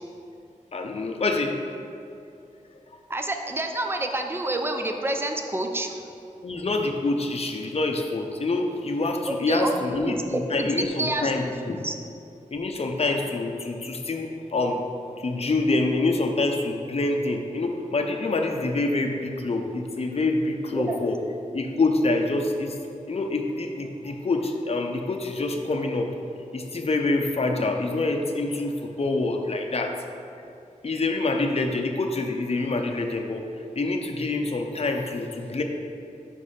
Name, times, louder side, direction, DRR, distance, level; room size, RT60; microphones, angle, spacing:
voice 1, 0.7-1.6 6.4-11.8 12.5-14.8 15.2-21.2 21.5-22.8 23.1-26.1 26.5-30.0 30.8-33.4 33.8-35.6, left 2 dB, 45° left, 3 dB, 0.6 m, -26 dB
voice 2, 3.1-5.9 9.5-9.8 10.0-10.7 11.0-11.9 20.7-21.0, right 2 dB, 15° right, 4 dB, 0.5 m, -28 dB
5.1 x 5.0 x 5.6 m, 2.6 s
wide cardioid pair, 70°, 14 cm